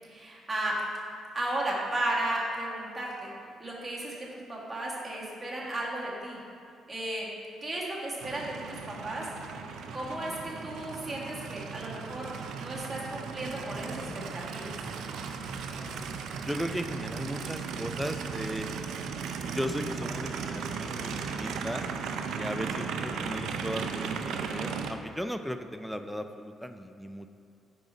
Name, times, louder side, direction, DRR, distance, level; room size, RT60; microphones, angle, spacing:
voice 1, 0.1-0.7 1.3-3.3 3.6-6.4 6.9-7.3 7.6-9.3 9.9-12.3 12.6-14.7, right 1 dB, 20° right, -5 dB, 1.4 m, -34 dB
Aircraft, 8.2-24.9, right 5 dB, 80° right, 0.4 m, -36 dB
voice 2, 15.8-16.2 16.4-18.7 19.3-21.9 22.4-27.3, equal, ahead, 8 dB, 0.3 m, -36 dB
4.8 x 3.9 x 5.2 m, 2.6 s
cardioid pair, 90°, 0 cm